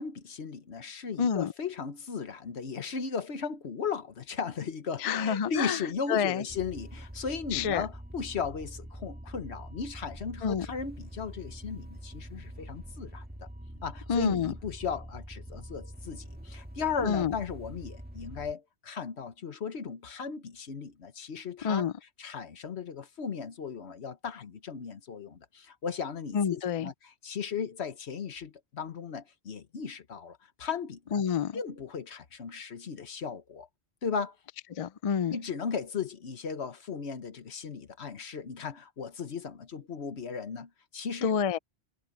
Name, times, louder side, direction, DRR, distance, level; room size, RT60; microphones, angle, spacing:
voice 1, 0.0-13.5 13.8-31.2 31.5-33.7 34.0-34.4 35.3-41.4, left 6 dB, 75° left, 1.4 m, -36 dB
voice 2, 1.2-1.5 5.0-5.8 6.1-6.4 7.5-7.8 10.4-10.7 14.1-14.5 17.0-17.3 21.6-21.9 26.3-26.9 31.1-31.6 34.8-35.4 41.2-41.6, left 7 dB, 50° left, 0.4 m, -28 dB
sound 1, 6.5-18.5, equal, 10° right, 1.6 m, -45 dB
omnidirectional pair, 1.1 m